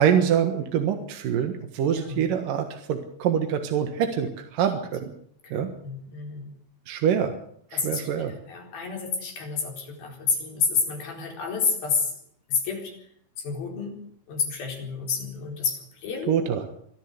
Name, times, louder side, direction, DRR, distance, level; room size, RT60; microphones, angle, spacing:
voice 1, 0.0-5.1 5.5-5.7 6.9-7.3 7.7-8.3 16.3-16.7, right 8 dB, 70° right, 6 dB, 3.1 m, -25 dB
voice 2, 1.8-2.2 5.4-6.5 7.7-12.1 12.5-12.9 13.4-14.0 14.3-16.4, left 5 dB, 80° left, 2 dB, 6.3 m, -29 dB
24.5 x 14.0 x 8.4 m, 0.65 s
omnidirectional pair, 4.2 m